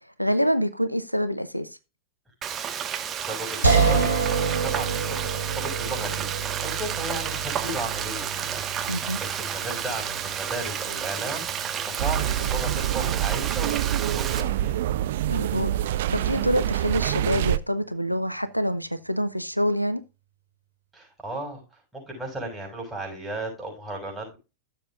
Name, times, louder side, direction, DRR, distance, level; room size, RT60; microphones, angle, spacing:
voice 1, 0.2-1.7 8.9-9.2 15.3-20.0, equal, 90° left, 0.7 m, -26 dB
Frying (food), 2.4-14.4, right 8 dB, 25° right, 1.4 m, -31 dB
voice 2, 3.1-14.7 20.9-21.6 21.9-24.4, right 1 dB, 10° right, 6.5 m, -35 dB
sound 1, 3.6-16.7, right 5 dB, 90° right, 3.4 m, -30 dB
sound 2, 12.0-17.6, right 12 dB, 55° right, 0.5 m, -26 dB
15.0 x 7.1 x 2.4 m
figure-of-eight pair, 90°, 0 cm